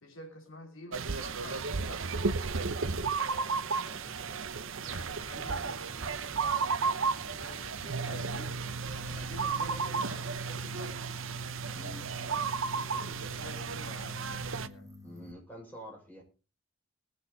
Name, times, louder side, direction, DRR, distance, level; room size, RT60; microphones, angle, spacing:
voice 1, 0.0-2.2 2.8-4.4 4.8-5.8 6.6-6.7 7.2-8.6 8.9-11.2 12.0-12.5 12.9-14.9, left 1 dB, 75° left, 3 dB, 3.3 m, -49 dB
sound 1, 0.9-14.7, right 4 dB, 75° right, 0.9 m, -33 dB
sound 2, 4.8-10.0, equal, 40° right, 3.2 m, -51 dB
sound 3, 8.1-15.3, left 2 dB, 15° right, 1.6 m, -51 dB
voice 2, 11.7-12.0 15.0-16.2, equal, 10° left, -1 dB, 6.0 m, -47 dB
21.5 x 8.1 x 4.0 m, 0.34 s
head